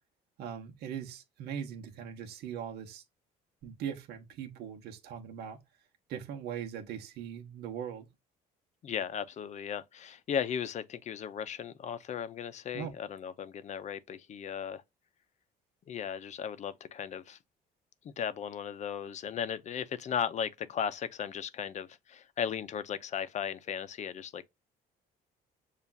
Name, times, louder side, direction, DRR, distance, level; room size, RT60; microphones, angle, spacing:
voice 1, 0.4-3.0 3.6-5.6 6.1-8.1 12.7-12.9, right 8 dB, 75° right, 0.9 m, -40 dB
voice 2, 8.8-14.8 15.9-17.4 18.0-24.5, left 8 dB, 45° left, 0.5 m, -36 dB
6.8 x 2.4 x 2.2 m
cardioid pair, 110°, 17 cm